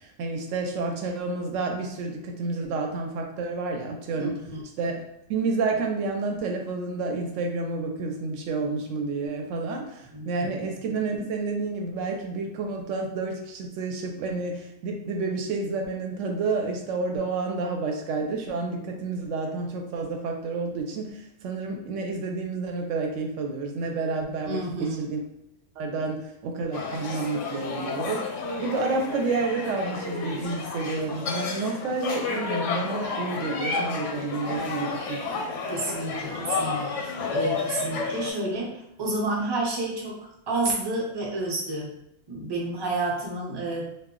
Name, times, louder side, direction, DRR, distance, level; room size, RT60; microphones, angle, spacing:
voice 1, 0.0-4.4 4.8-5.0 5.3-25.2 25.8-28.2 28.6-35.2, right 3 dB, 90° right, 2 dB, 0.9 m, -30 dB
voice 2, 4.2-4.6 10.1-10.3 24.4-25.1 35.7-40.2 40.5-41.9 42.3-43.9, right 2 dB, 30° right, -3 dB, 0.5 m, -30 dB
sound 1, 26.7-38.3, left 4 dB, 85° left, 0.9 m, -31 dB
2.2 x 2.1 x 3.6 m, 0.83 s
omnidirectional pair, 1.2 m